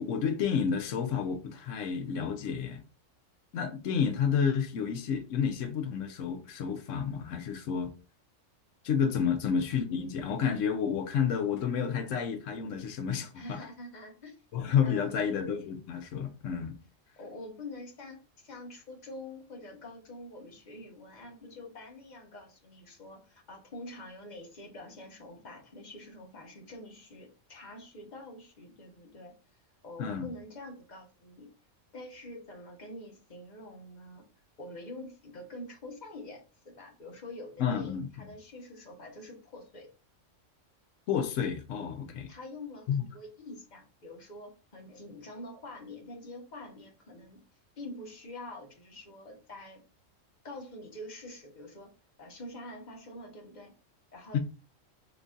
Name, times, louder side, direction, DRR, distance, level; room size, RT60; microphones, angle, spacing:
voice 1, 0.0-2.8 3.5-7.9 8.8-13.6 14.5-16.8 30.0-30.3 37.6-38.1 41.1-42.3 42.9-43.1 54.3-54.4, left 7 dB, 75° left, 1.0 m, -30 dB
voice 2, 13.3-14.4 14.8-15.5 17.2-29.3 29.8-31.5 31.9-34.2 34.6-39.9 42.3-47.4 47.8-49.8 50.4-51.9 52.2-53.7 54.1-54.4, left 1 dB, 40° left, 1.0 m, -46 dB
3.9 x 2.9 x 2.3 m
omnidirectional pair, 1.3 m